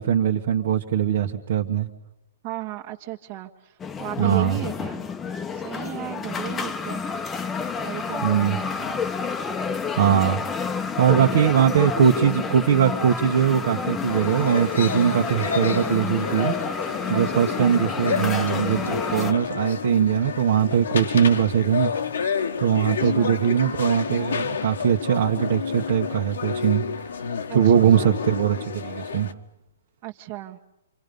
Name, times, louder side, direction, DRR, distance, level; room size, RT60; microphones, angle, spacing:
voice 1, 0.0-1.9 4.2-4.6 8.2-8.6 9.9-10.4 11.0-16.5 17.1-21.9 22.6-26.8 27.5-29.3, right 9 dB, 60° right, 0 dB, 1.6 m, -21 dB
voice 2, 2.4-3.7 4.0-5.1 5.5-7.0 7.8-9.0 15.4-15.9 17.1-17.8 22.9-23.4 27.5-28.2 30.0-30.6, right 16 dB, 40° right, 0 dB, 1.6 m, -36 dB
sound 1, 3.8-19.3, left 5 dB, 15° left, 1.0 m, -29 dB
sound 2, 14.1-29.3, left 6 dB, 80° left, 1.6 m, -30 dB
28.5 x 26.0 x 5.4 m, 0.87 s
hypercardioid pair, 140°, 0 cm